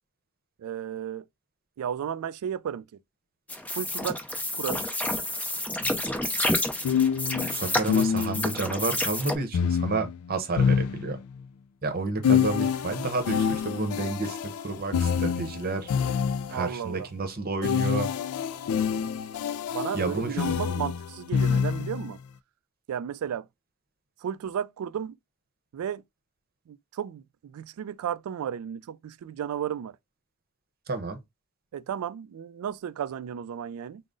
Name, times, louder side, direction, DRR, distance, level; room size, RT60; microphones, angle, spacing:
voice 1, 0.6-1.2 1.8-2.9 3.8-4.2 4.5-4.8 16.5-17.1 19.7-22.2 22.9-23.5 24.2-25.2 25.7-26.0 26.7-30.0 31.7-34.0, right 9 dB, 80° right, 0.3 m, -33 dB
sound 1, 3.5-9.4, left 1 dB, 5° left, 0.5 m, -29 dB
sound 2, 5.8-6.0 6.8-8.7 9.5-11.5 12.2-16.8 17.6-22.1, left 7 dB, 85° left, 0.3 m, -27 dB
voice 2, 7.5-11.2 11.8-15.9 16.5-18.1 19.9-20.4 30.9-31.2, right 3 dB, 45° right, 0.8 m, -30 dB
3.7 x 2.0 x 3.7 m
head